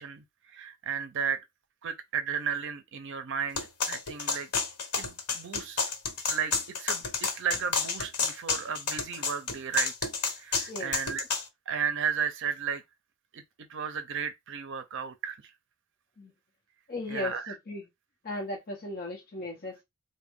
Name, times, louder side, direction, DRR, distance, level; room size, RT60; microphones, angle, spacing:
voice 1, 0.0-1.5 1.8-4.5 5.0-5.9 6.3-6.5 6.8-10.1 10.4-11.3 11.7-12.8 13.3-13.4 13.7-15.4 17.1-17.6, right 7 dB, 55° right, 0.5 m, -34 dB
sound 1, 3.6-11.4, left 5 dB, 80° left, 1.1 m, -30 dB
voice 2, 16.9-17.8 18.2-19.8, left 2 dB, 40° left, 0.9 m, -36 dB
3.6 x 2.2 x 3.5 m
head